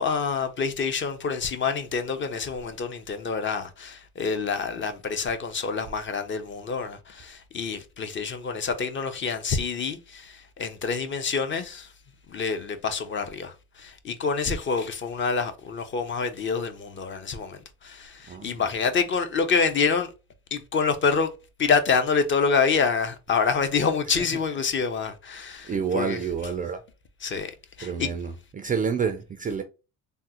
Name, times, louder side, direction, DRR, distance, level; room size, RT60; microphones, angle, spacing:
voice 1, 0.0-11.9 12.3-20.1 20.5-21.3 21.6-26.2 27.2-27.5 27.8-28.1, left 5 dB, 30° left, 0.6 m, -27 dB
voice 2, 18.3-18.7 24.1-24.2 25.7-26.8 27.8-29.6, right 6 dB, 25° right, 0.3 m, -29 dB
3.4 x 2.0 x 2.8 m
supercardioid pair, 100°, 37 cm